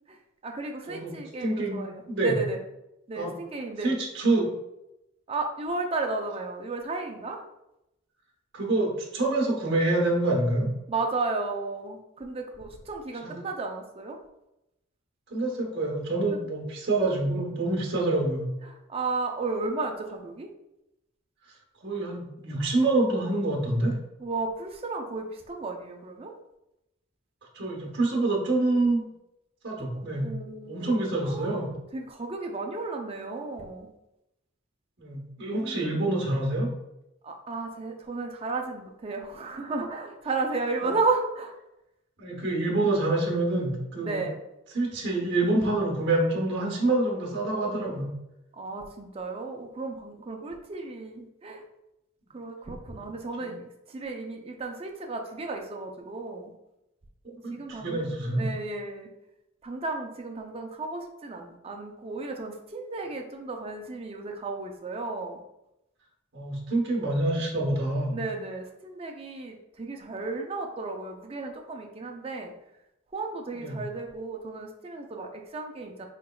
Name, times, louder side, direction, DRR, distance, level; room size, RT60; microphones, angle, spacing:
voice 1, 0.4-2.6 3.1-4.0 5.3-7.4 10.9-14.2 18.7-20.5 24.2-26.3 29.9-31.6 31.9-33.9 35.6-36.0 37.2-41.5 44.0-44.4 48.5-51.6 52.3-56.5 57.5-59.1 59.6-65.4 68.1-72.5 73.1-76.1, right 3 dB, 30° right, 3 dB, 0.4 m, -33 dB
voice 2, 1.4-2.3 3.1-3.3 3.8-4.5 8.5-10.7 13.2-13.4 15.3-18.5 21.8-23.9 27.5-29.0 29.6-30.3 30.7-31.7 35.0-36.7 40.8-40.9 42.2-44.3 44.7-48.1 53.4-53.5 57.4-58.4 66.3-68.2 73.5-73.8, right 2 dB, 55° right, -1 dB, 1.0 m, -26 dB
3.8 x 3.4 x 2.2 m, 0.88 s
head